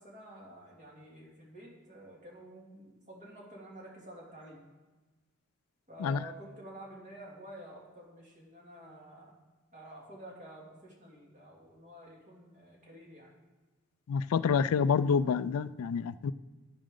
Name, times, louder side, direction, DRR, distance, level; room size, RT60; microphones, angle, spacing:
voice 1, 0.0-4.6 5.9-9.3 9.7-13.3, right 1 dB, 35° right, -3 dB, 2.5 m, -50 dB
voice 2, 14.1-16.3, left 6 dB, 80° left, 16 dB, 0.3 m, -28 dB
10.5 x 10.0 x 3.8 m, 1.3 s
head